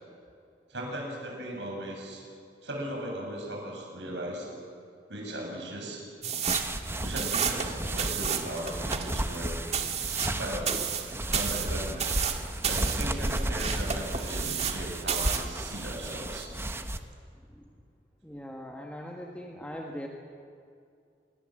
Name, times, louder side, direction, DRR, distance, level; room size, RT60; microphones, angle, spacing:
voice 1, 0.7-2.2 2.6-4.5 5.1-6.0 7.0-9.5 10.3-10.8 11.3-12.1 12.6-16.5, right 1 dB, 80° right, 0 dB, 7.8 m, -37 dB
sound 1, 6.2-14.8 15.1-15.5, right 7 dB, 40° right, 1.9 m, -32 dB
sound 2, 6.5-17.0, right 1 dB, 15° right, 1.1 m, -33 dB
voice 2, 18.2-20.1, equal, 10° left, 0 dB, 1.7 m, -40 dB
26.0 x 22.5 x 7.8 m, 2.4 s
head